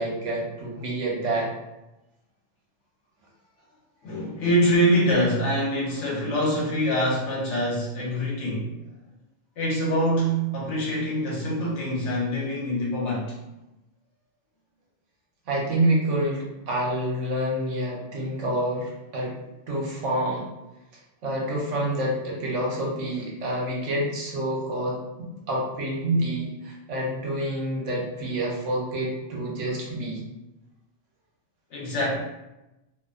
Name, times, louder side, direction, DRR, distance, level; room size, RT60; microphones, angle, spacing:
voice 1, 0.0-1.5 15.5-19.3 19.7-20.5 21.2-25.0 25.5-30.2, right 1 dB, 70° right, -3 dB, 1.0 m, -27 dB
voice 2, 4.0-8.8 9.6-13.4 31.7-32.2, equal, 65° left, -5 dB, 1.1 m, -24 dB
2.6 x 2.0 x 2.3 m, 0.96 s
omnidirectional pair, 1.3 m